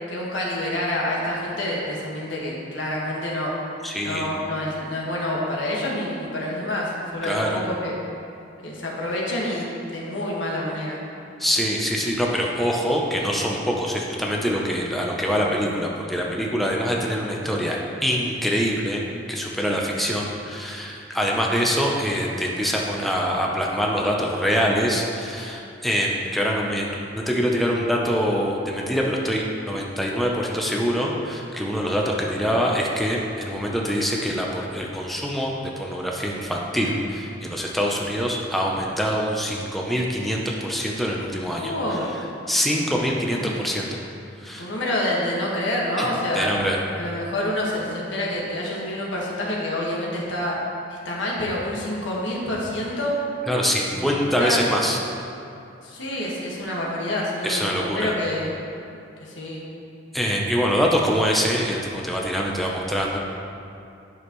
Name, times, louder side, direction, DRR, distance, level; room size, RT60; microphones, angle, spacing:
voice 1, 0.1-3.5 4.0-7.9 8.6-11.0 15.5-15.7 41.6-42.1 43.3-43.6 44.6-46.5 47.0-50.6 51.0-53.2 53.9-54.6 55.8-58.5 59.2-59.6, left 1 dB, 90° left, -4 dB, 1.7 m, -27 dB
voice 2, 3.8-4.3 7.2-7.6 11.4-19.0 19.3-41.7 42.5-44.0 44.4-44.7 46.0-46.8 53.5-55.0 57.4-58.1 60.1-63.2, equal, ahead, -2 dB, 0.7 m, -24 dB
11.0 x 6.5 x 3.1 m, 2.6 s
head